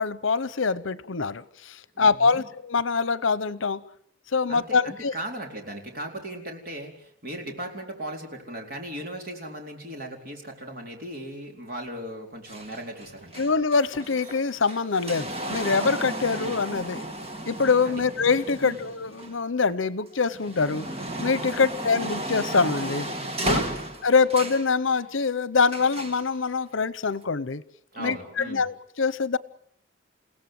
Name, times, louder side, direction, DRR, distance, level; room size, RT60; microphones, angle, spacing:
voice 1, 0.0-3.8 4.3-5.1 13.4-17.0 17.4-20.9 21.2-23.1 23.4-23.7 24.0-27.6 28.0-29.4, left 4 dB, 80° left, 17 dB, 0.9 m, -24 dB
voice 2, 1.9-2.5 4.5-13.5 17.8-18.0 18.6-18.8 21.5-21.9 23.4-23.8 27.9-28.7, right 1 dB, 50° right, 2 dB, 4.4 m, -38 dB
studio door, 12.5-19.7 20.1-24.7 25.7-26.2 27.1-27.2, right 1 dB, 30° right, 2.1 m, -34 dB
29.0 x 17.0 x 7.8 m, 0.69 s
head